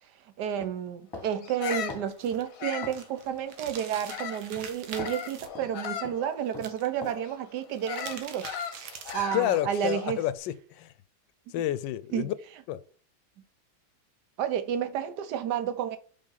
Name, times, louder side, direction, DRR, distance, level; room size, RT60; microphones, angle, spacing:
voice 1, 0.4-8.6 9.1-10.2 12.1-12.3 14.4-16.0, right 9 dB, 65° right, 1.2 m, -31 dB
sound 1, 0.6-1.3 1.9-2.4 2.8-3.0 3.8-4.0 4.6-4.7 5.0-5.2 5.5-5.7 6.0-6.2 6.5-6.7 7.0-7.2, left 2 dB, 15° left, 1.2 m, -42 dB
Bird vocalization bird call bird song, 1.4-4.5 4.9-10.2, left 8 dB, 55° left, 1.1 m, -38 dB
sound 2, 2.1-5.5 6.5-7.1 7.6-9.3, right 7 dB, 80° right, 1.7 m, -44 dB
voice 2, 9.3-10.9 11.5-12.3 12.7-12.8, left 13 dB, 80° left, 1.2 m, -29 dB
5.4 x 5.3 x 5.4 m
omnidirectional pair, 2.1 m